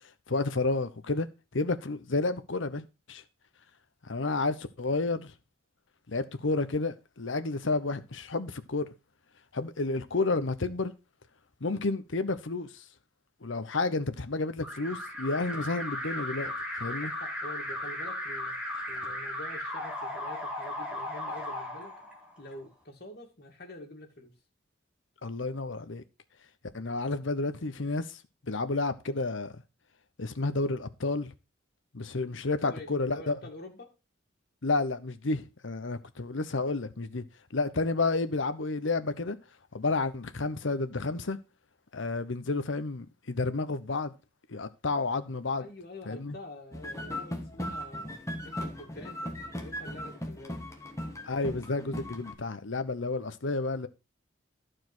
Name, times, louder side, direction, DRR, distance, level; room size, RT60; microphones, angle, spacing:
voice 1, 0.3-1.3 1.5-3.2 4.0-5.3 6.1-8.9 9.5-10.9 11.6-12.8 13.4-16.5 16.8-17.1 25.2-26.0 26.7-28.2 28.5-29.6 30.2-31.3 31.9-33.4 34.6-37.2 37.5-39.4 39.7-41.4 41.9-44.1 44.5-45.7 46.1-46.4 51.2-53.9, left 3 dB, 70° left, 0.9 m, -31 dB
Alarm, 14.6-22.5, left 1 dB, 5° right, 1.8 m, -36 dB
voice 2, 16.8-18.5 18.9-21.9 22.4-24.3 32.6-33.9 45.6-48.1 48.4-50.6, left 1 dB, 50° left, 2.3 m, -46 dB
sound 1, 46.7-52.3, equal, 15° left, 1.4 m, -38 dB
12.0 x 4.8 x 6.1 m
head